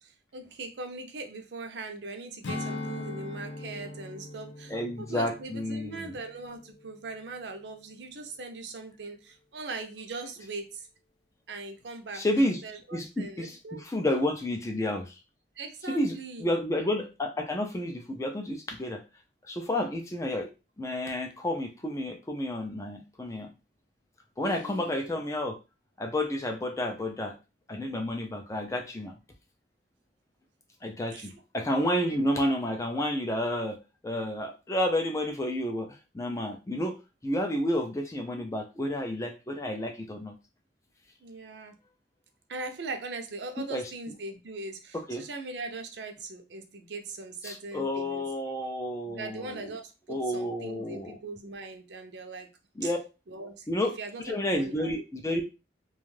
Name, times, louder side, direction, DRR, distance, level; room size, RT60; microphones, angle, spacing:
voice 1, 0.0-10.9 11.5-12.2 12.6-13.8 15.6-16.5 24.4-25.1 31.1-31.3 32.1-32.2 41.2-41.7 42.5-48.2 49.0-52.5 52.8-52.9 53.3-53.7 54.0-54.9, right 3 dB, 75° right, 5 dB, 0.5 m, -40 dB
Strum, 2.4-7.1 7.5-7.7, left 2 dB, 80° left, 0.4 m, -40 dB
voice 2, 4.7-6.1 12.1-12.6 12.9-15.2 15.9-19.0 19.5-20.5 20.8-23.5 24.4-25.6 26.0-27.3 27.7-29.1 30.8-35.9 36.1-40.3 43.6-43.8 44.9-45.2 47.4-49.7 50.1-51.2 52.8-53.0 53.7-53.9 54.3-55.5, left 1 dB, 15° left, 4 dB, 0.3 m, -30 dB
2.5 x 2.3 x 3.1 m, 0.29 s
head